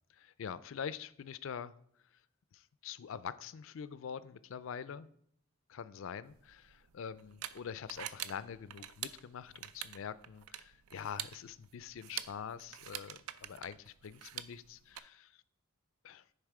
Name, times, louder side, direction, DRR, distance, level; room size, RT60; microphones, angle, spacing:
voice 1, 0.1-1.7 2.5-5.1 5.7-15.4 16.0-16.2, left 7 dB, 65° left, 16 dB, 0.4 m, -45 dB
sound 1, 6.3-15.0, right 11 dB, 90° right, 0.4 m, -46 dB
9.9 x 3.7 x 4.8 m, 0.68 s
head